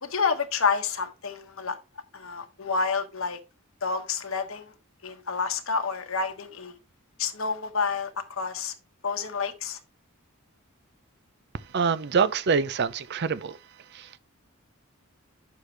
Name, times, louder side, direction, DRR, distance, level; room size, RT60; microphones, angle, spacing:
voice 1, 0.0-1.8 2.1-3.4 3.8-4.7 5.0-6.8 7.2-8.7 9.0-9.8, left 5 dB, 65° left, 1.2 m, -29 dB
voice 2, 11.7-13.6 13.9-14.2, right 5 dB, 50° right, 0.5 m, -25 dB
9.5 x 6.5 x 3.3 m
head